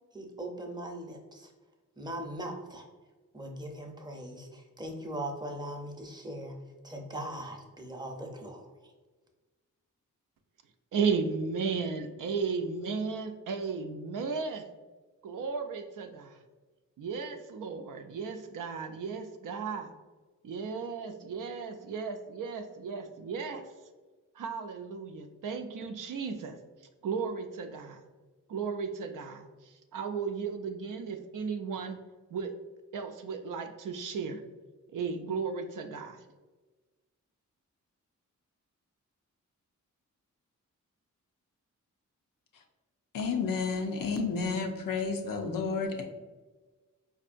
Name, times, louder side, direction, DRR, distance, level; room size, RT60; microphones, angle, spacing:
voice 1, 0.1-1.5 2.0-2.8 3.3-8.7, right 1 dB, 15° right, 1 dB, 0.6 m, -40 dB
voice 2, 10.9-14.7 15.2-16.4 17.0-19.9 20.4-23.6 24.4-26.6 27.0-28.0 28.5-29.5 29.9-32.0 32.3-32.5 32.9-34.4 34.9-36.2, right 5 dB, 75° right, 6 dB, 0.5 m, -34 dB
voice 3, 43.1-46.0, left 4 dB, 90° left, 2 dB, 0.6 m, -31 dB
4.4 x 2.6 x 2.5 m, 1.3 s
cardioid pair, 70°, 32 cm